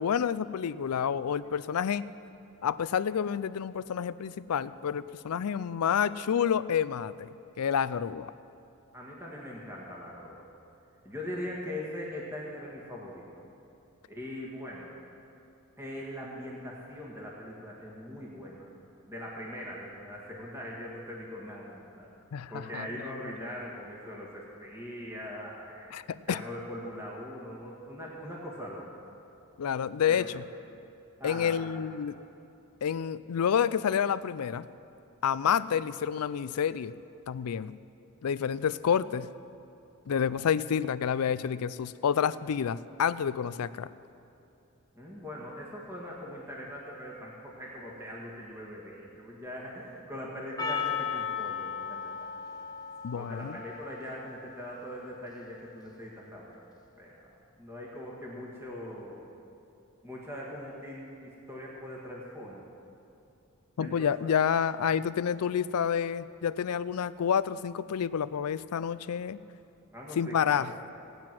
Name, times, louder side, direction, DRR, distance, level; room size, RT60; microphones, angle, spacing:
voice 1, 0.0-2.1 2.6-7.3 7.6-8.3 22.3-22.9 25.9-26.4 29.6-30.4 31.2-32.3 32.8-34.7 35.2-36.9 37.3-37.8 38.2-39.3 40.1-43.9 53.0-53.6 63.8-69.4 70.2-70.7, left 8 dB, 80° left, 16 dB, 0.4 m, -29 dB
voice 2, 8.9-10.4 11.1-13.2 14.1-14.9 15.8-18.7 19.1-22.1 22.5-25.9 26.3-28.9 30.0-30.3 31.2-31.7 45.0-52.3 53.2-56.6 57.0-59.3 60.0-62.7 63.8-64.3 69.9-70.8, left 1 dB, 10° right, -4 dB, 1.7 m, -41 dB
Percussion, 50.6-54.9, left 7 dB, 20° left, 0.9 m, -36 dB
17.0 x 9.3 x 6.0 m, 2.7 s
head